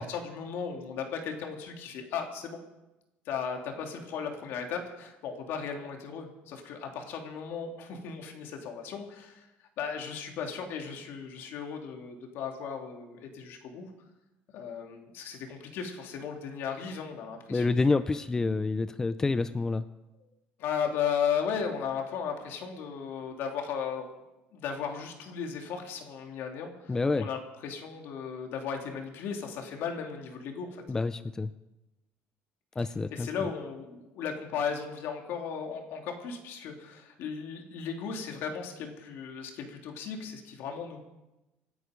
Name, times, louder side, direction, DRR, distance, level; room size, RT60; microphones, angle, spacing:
voice 1, 0.0-2.6 3.2-13.9 14.5-17.8 20.6-24.1 24.5-30.8 33.1-41.0, left 6 dB, 65° left, 3 dB, 2.8 m, -36 dB
voice 2, 17.5-19.8 26.9-27.3 30.9-31.5 32.8-33.3, left 3 dB, 15° left, 12 dB, 0.4 m, -28 dB
25.5 x 9.4 x 5.2 m, 1.0 s
cardioid pair, 155°, 4 cm